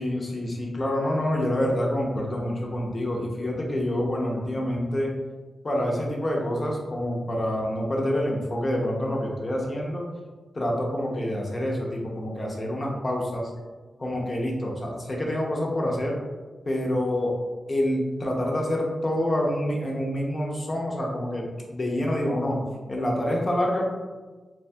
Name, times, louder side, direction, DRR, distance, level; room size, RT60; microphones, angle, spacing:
voice 1, 0.0-5.1 5.6-10.0 10.5-13.5 14.0-16.2 16.6-17.4 17.7-22.6 22.9-23.9, left 1 dB, 35° left, -2 dB, 0.6 m, -27 dB
2.8 x 2.2 x 2.7 m, 1.3 s
wide cardioid pair, 85°, 0 cm